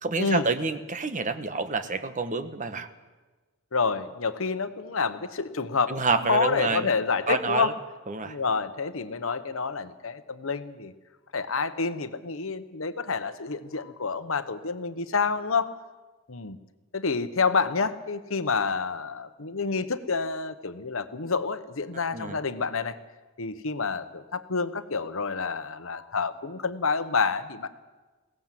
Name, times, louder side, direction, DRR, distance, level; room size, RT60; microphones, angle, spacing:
voice 1, 0.0-2.9 5.9-7.0 7.3-7.7 8.1-8.4 22.1-22.4, right 4 dB, 35° right, 10 dB, 1.2 m, -28 dB
voice 2, 3.7-5.9 6.3-7.7 8.2-10.9 11.3-15.7 16.3-16.6 16.9-23.0 23.4-27.7, left 4 dB, 70° left, 11 dB, 1.1 m, -28 dB
21.5 x 17.5 x 7.6 m, 1.3 s
head